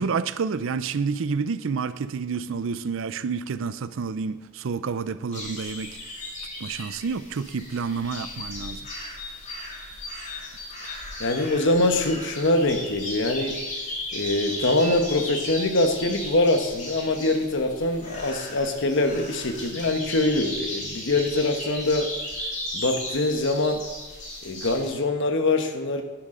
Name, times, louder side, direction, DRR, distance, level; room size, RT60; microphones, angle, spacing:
voice 1, 0.0-6.0 6.6-8.9, right 5 dB, 70° right, 0.5 m, -29 dB
sound 1, 5.3-24.9, left 1 dB, 35° left, 2.6 m, -36 dB
voice 2, 11.2-13.6 14.1-22.1 22.7-23.8 24.4-26.0, left 2 dB, 65° left, 1.1 m, -24 dB
10.5 x 10.5 x 3.8 m
head